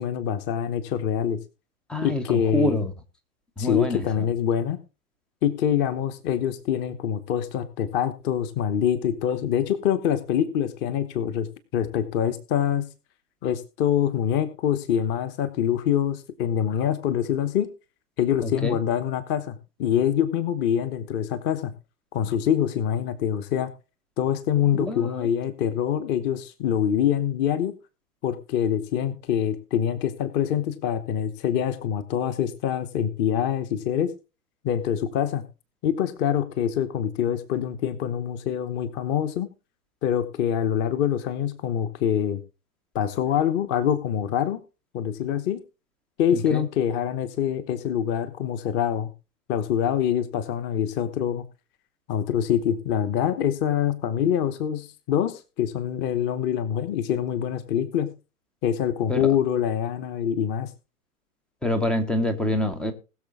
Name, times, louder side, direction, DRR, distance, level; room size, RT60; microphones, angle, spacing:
voice 1, 0.0-1.4 2.0-2.8 3.6-4.8 5.4-11.5 11.7-12.9 13.4-17.7 18.2-21.7 22.1-23.7 24.2-27.7 28.2-34.1 34.6-35.4 35.8-39.5 40.0-42.4 42.9-44.6 44.9-45.6 46.2-49.1 49.5-51.4 52.1-58.1 58.6-60.7, left 9 dB, 25° left, 13 dB, 1.0 m, -25 dB
voice 2, 1.9-2.9 3.6-4.0 18.4-18.8 24.7-25.3 46.3-46.6 59.1-59.2 61.6-62.9, left 1 dB, ahead, 9 dB, 0.5 m, -26 dB
20.5 x 6.9 x 3.6 m, 0.31 s
figure-of-eight pair, 120°, 47 cm